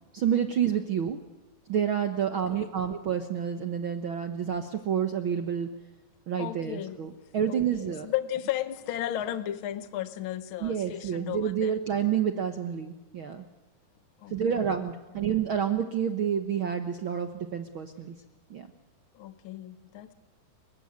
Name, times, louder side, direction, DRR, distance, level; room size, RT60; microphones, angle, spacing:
voice 1, 0.1-1.2 1.7-5.7 6.3-8.1 10.6-13.4 14.3-18.1 18.5-18.7, right 8 dB, 80° right, 7 dB, 1.1 m, -29 dB
voice 2, 2.3-2.9 6.4-7.0 7.5-11.8 14.2-14.6 15.1-15.2 19.1-20.1, left 12 dB, 75° left, 11 dB, 1.1 m, -35 dB
30.0 x 16.5 x 9.6 m, 1.0 s
omnidirectional pair, 4.0 m